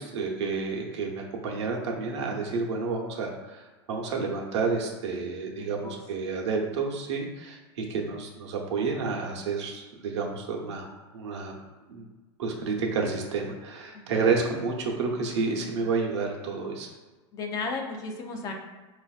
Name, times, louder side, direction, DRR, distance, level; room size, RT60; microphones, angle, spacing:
voice 1, 0.0-3.6 3.9-11.5 11.9-12.1 12.4-16.9, right 4 dB, 90° right, 0 dB, 0.7 m, -30 dB
voice 2, 5.6-6.0 13.9-14.0 17.3-18.5, left 3 dB, 25° left, 3 dB, 0.3 m, -34 dB
4.0 x 2.5 x 2.3 m, 1.2 s
supercardioid pair, 155°, 14 cm